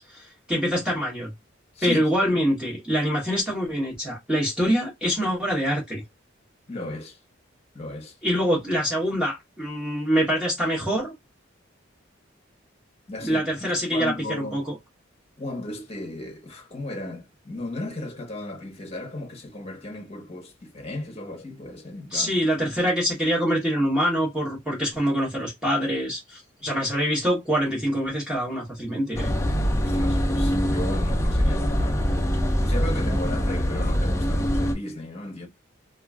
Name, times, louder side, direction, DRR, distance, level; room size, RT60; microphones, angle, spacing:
voice 1, 0.1-1.3 1.8-6.0 8.2-11.1 13.2-14.7 22.1-29.3, equal, 5° right, 1.1 m, -25 dB
voice 2, 6.7-7.2 7.7-8.2 13.1-13.4 13.9-14.7 15.4-22.4 26.6-26.7 29.7-32.1 32.6-35.5, left 2 dB, 30° left, 0.8 m, -35 dB
sound 1, 29.2-34.7, equal, 15° left, 0.4 m, -23 dB
3.0 x 2.4 x 2.2 m
head